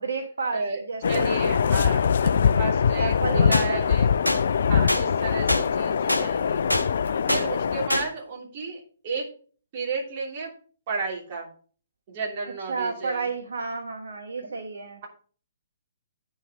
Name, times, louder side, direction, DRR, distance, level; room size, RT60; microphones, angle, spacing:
voice 1, 0.0-1.6 2.3-4.0 12.4-15.0, right 4 dB, 65° right, 6 dB, 1.0 m, -32 dB
sound 1, 1.0-7.9, left 7 dB, 55° left, 0.4 m, -23 dB
voice 2, 1.1-2.3 2.6-4.1 4.7-6.6 7.3-9.2 9.7-10.5 10.9-11.5 12.1-13.3 14.4-14.6, right 4 dB, 40° right, -1 dB, 3.0 m, -33 dB
sound 2, 3.5-3.7 4.3-4.4 4.9-5.0 5.5-5.6 6.1-6.2 6.7-6.9 7.3-7.4 7.9-8.1, left 1 dB, 85° left, 1.3 m, -23 dB
9.6 x 5.6 x 4.9 m, 0.42 s
figure-of-eight pair, 125°, 0 cm